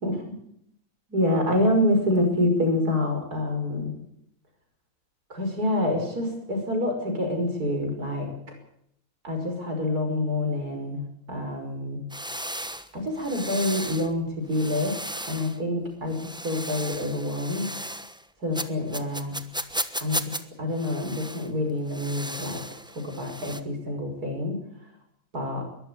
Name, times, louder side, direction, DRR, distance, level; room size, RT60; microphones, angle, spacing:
voice 1, 1.1-3.9 5.3-8.3 9.2-12.1 12.9-15.0 15.3-16.2 16.4-17.7 18.4-19.4 20.0-22.6 22.9-24.6 25.3-25.7, left 1 dB, 80° right, 4 dB, 6.2 m, -27 dB
sound 1, 12.1-14.1 14.5-15.6 16.1-18.2 18.5-20.4 20.7-21.5 21.9-23.6, right 1 dB, 5° right, 1.0 m, -35 dB
22.0 x 14.0 x 9.9 m, 0.74 s
omnidirectional pair, 1.6 m